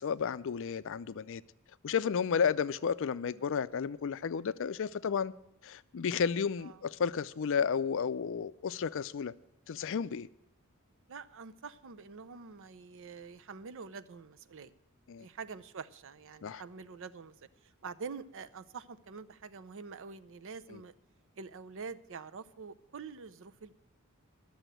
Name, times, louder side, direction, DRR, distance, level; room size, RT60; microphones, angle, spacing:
voice 1, 0.0-1.4 1.8-5.3 5.6-9.3 9.7-10.3 15.1-15.3 16.4-16.6 20.7-20.8, left 6 dB, 60° left, 0.4 m, -32 dB
voice 2, 11.1-14.7 15.2-20.9 21.4-23.8, right 5 dB, 60° right, 0.6 m, -46 dB
11.0 x 7.0 x 9.0 m
head